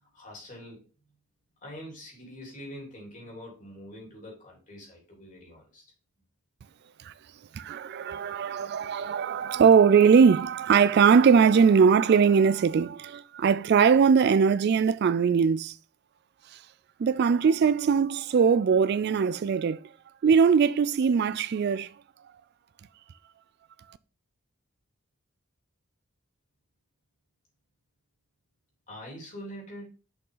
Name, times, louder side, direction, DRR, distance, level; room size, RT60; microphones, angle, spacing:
voice 1, 0.1-0.8 1.6-5.8 28.9-29.9, equal, 35° left, 3.2 m, -44 dB
voice 2, 7.5-15.7 17.0-19.8 20.2-21.9, right 6 dB, 50° right, 0.3 m, -21 dB
6.5 x 5.4 x 3.8 m
head